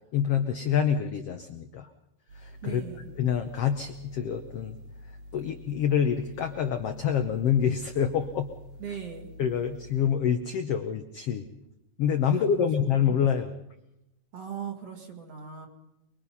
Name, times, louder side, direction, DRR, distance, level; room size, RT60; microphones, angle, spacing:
voice 1, 0.1-1.9 2.3-2.8 3.2-4.8 5.3-8.5 9.4-11.5 12.0-13.5, left 8 dB, 70° left, 7 dB, 1.4 m, -26 dB
sound 1, 2.3-10.1, left 1 dB, 80° right, 7.0 m, -47 dB
voice 2, 2.6-3.1 8.8-9.3 12.3-13.1 14.3-15.7, right 8 dB, 50° right, 3 dB, 2.9 m, -40 dB
24.0 x 23.0 x 5.6 m, 0.89 s
omnidirectional pair, 3.9 m